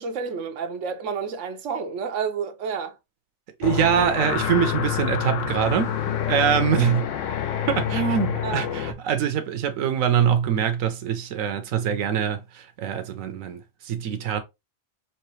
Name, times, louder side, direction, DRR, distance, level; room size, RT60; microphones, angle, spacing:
voice 1, 0.0-3.0 4.0-4.1 8.4-8.6, right 6 dB, 70° right, 1.2 m, -30 dB
sound 1, 3.6-8.9, left 9 dB, 75° left, 1.1 m, -27 dB
voice 2, 3.6-7.1 7.7-14.4, right 8 dB, 85° right, 1.1 m, -24 dB
5.7 x 3.0 x 3.0 m
omnidirectional pair, 1.3 m